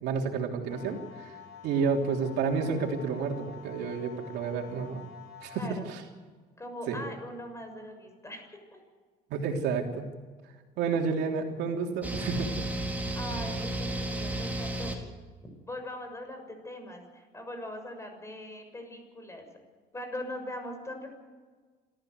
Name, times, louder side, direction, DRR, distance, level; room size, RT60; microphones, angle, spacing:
voice 1, 0.0-1.3 1.6-5.0 5.4-6.0 6.9-7.0 9.3-10.1 10.8-12.9, right 5 dB, 85° right, 2 dB, 3.3 m, -30 dB
sound 1, 0.7-5.7, left 8 dB, 85° left, 5.2 m, -48 dB
voice 2, 5.5-5.9 6.6-8.6 13.1-15.0 15.7-19.5 19.9-21.1, left 1 dB, 15° left, 5 dB, 6.7 m, -41 dB
sound 2, 12.0-14.9, right 1 dB, 10° right, 4.3 m, -33 dB
26.5 x 14.5 x 8.1 m, 1.4 s
cardioid pair, 110°, 17 cm